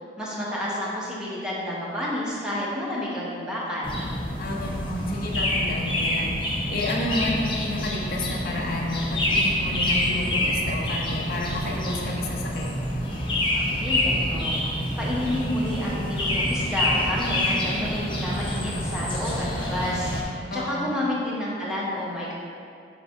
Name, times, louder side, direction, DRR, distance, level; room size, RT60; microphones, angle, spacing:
voice 1, 0.2-4.0 13.5-14.5 15.0-20.1 20.5-22.3, left 1 dB, 5° right, -7 dB, 1.1 m, -30 dB
sound 1, 3.8-20.2, left 1 dB, 30° left, 0.8 m, -27 dB
voice 2, 4.4-12.7 20.5-20.9, left 1 dB, 55° left, -3 dB, 0.9 m, -31 dB
7.3 x 2.6 x 5.1 m, 2.2 s
head